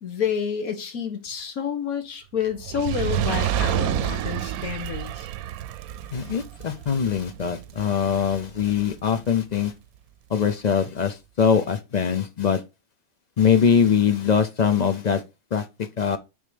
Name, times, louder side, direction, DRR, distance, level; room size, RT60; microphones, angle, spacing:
voice 1, 0.0-5.3, left 7 dB, 85° left, 1.8 m, -29 dB
Fire, 2.6-9.0 9.7-9.8, right 11 dB, 90° right, 1.0 m, -29 dB
voice 2, 6.1-9.7 10.3-12.6 13.4-15.2 15.5-16.2, left 7 dB, 50° left, 0.5 m, -22 dB
6.5 x 3.7 x 5.0 m
omnidirectional pair, 1.5 m